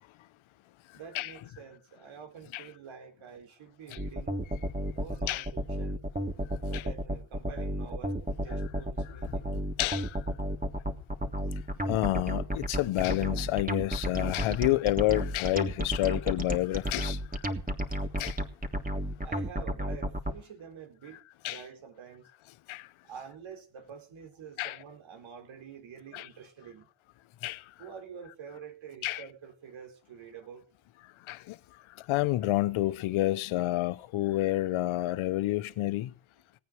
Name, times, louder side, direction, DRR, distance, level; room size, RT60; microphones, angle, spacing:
voice 1, 0.9-4.4 4.9-6.1 6.7-9.6 19.2-21.2 21.5-22.3 23.0-26.9 27.8-30.6, right 7 dB, 75° right, 4.4 m, -47 dB
sound 1, 4.0-20.3, right 1 dB, 15° right, 3.2 m, -32 dB
voice 2, 9.8-10.1 11.9-17.2 18.2-18.4 21.4-21.6 22.7-22.8 24.6-24.8 26.1-26.3 27.4-27.6 29.0-29.2 31.3-31.5 32.1-36.1, left 16 dB, 85° left, 0.9 m, -29 dB
18.5 x 9.3 x 6.4 m
supercardioid pair, 50°, 47 cm